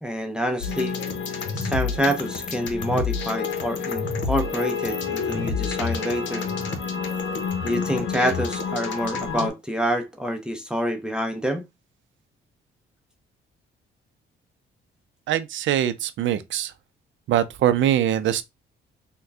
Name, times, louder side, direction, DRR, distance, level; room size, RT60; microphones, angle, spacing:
voice 1, 0.0-1.0 1.5-6.5 7.6-11.6, equal, 5° right, 0.6 m, -27 dB
sound 1, 0.6-9.5, left 5 dB, 70° left, 0.9 m, -28 dB
voice 2, 15.3-16.7 17.3-18.4, right 11 dB, 70° right, 0.5 m, -22 dB
3.7 x 2.2 x 3.3 m
cardioid pair, 90°, 20 cm